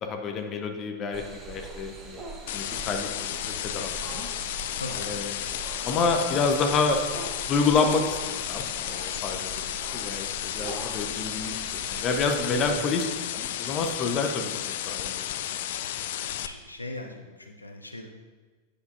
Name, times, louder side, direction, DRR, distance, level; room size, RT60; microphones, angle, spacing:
voice 1, 0.0-2.2 2.5-4.3 5.0-5.3 5.8-7.0 7.5-14.5 14.9-15.6, left 4 dB, 30° left, 4 dB, 0.9 m, -28 dB
sound 1, 1.1-12.8, right 3 dB, 25° right, 1.1 m, -42 dB
sound 2, 2.5-16.5, left 11 dB, 55° left, 0.3 m, -33 dB
voice 2, 4.7-5.1 15.7-15.9 16.2-18.1, left 2 dB, 80° left, 4 dB, 0.7 m, -40 dB
9.6 x 6.6 x 2.6 m, 1.4 s
figure-of-eight pair, 90°, 0 cm